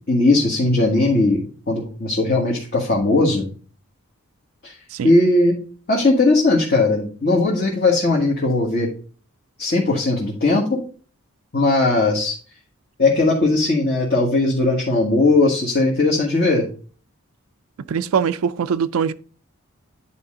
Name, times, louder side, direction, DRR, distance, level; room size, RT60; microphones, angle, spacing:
voice 1, 0.1-3.5 4.6-4.7 5.0-5.6 5.9-8.9 9.6-10.8 11.5-12.4 13.0-16.7, left 2 dB, 45° left, 1.5 m, -18 dB
voice 2, 17.9-19.1, right 7 dB, 75° right, 0.4 m, -22 dB
9.7 x 4.3 x 3.7 m
head